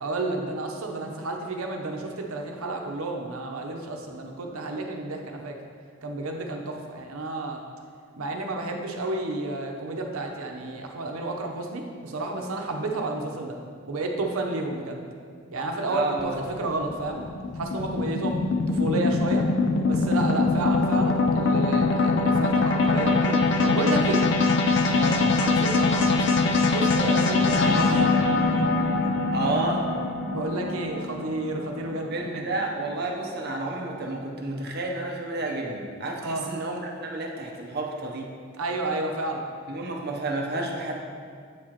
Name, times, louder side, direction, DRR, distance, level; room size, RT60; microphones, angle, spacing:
voice 1, 0.0-5.6 6.0-7.6 8.2-13.6 13.9-15.0 15.5-17.3 17.5-18.4 18.7-19.5 19.9-24.3 25.4-26.4 26.7-28.0 30.3-32.5 36.2-36.5 38.6-39.5, right 2 dB, 85° right, 2 dB, 0.7 m, -31 dB
voice 2, 15.9-16.4 24.9-25.3 29.3-29.9 31.6-31.7 32.1-38.3 39.7-41.0, right 2 dB, 45° right, 0 dB, 0.7 m, -30 dB
sound 1, 16.2-32.6, left 3 dB, 55° left, 0.4 m, -23 dB
8.4 x 4.8 x 2.9 m, 2.1 s
head